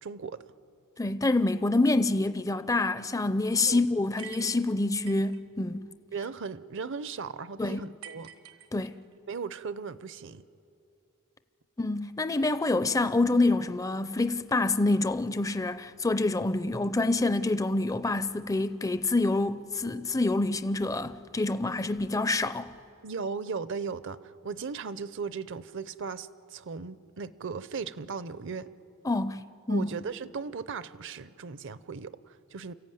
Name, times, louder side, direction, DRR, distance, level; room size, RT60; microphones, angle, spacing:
voice 1, 0.0-0.4 3.7-3.8 6.1-8.3 9.3-10.4 23.0-28.7 29.7-32.7, right 5 dB, 60° right, 0.7 m, -37 dB
voice 2, 1.0-5.9 7.6-7.8 8.7-9.0 11.8-22.7 29.0-29.4 29.7-29.9, left 2 dB, 15° left, 0.5 m, -27 dB
sound 1, 4.2-5.4 8.0-9.2, right 9 dB, 85° right, 1.4 m, -47 dB
29.5 x 15.0 x 9.3 m
head